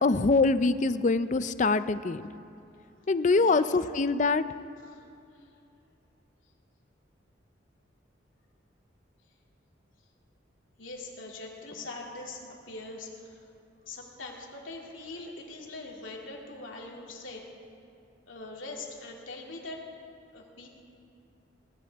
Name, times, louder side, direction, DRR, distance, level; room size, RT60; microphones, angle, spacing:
voice 1, 0.0-2.3 3.1-4.4, left 3 dB, 40° left, 13 dB, 0.4 m, -24 dB
voice 2, 10.8-12.4 12.7-13.4 13.8-17.4 18.3-19.8 20.3-20.7, left 2 dB, 90° left, -1 dB, 2.6 m, -42 dB
21.5 x 17.5 x 3.5 m, 2.5 s
head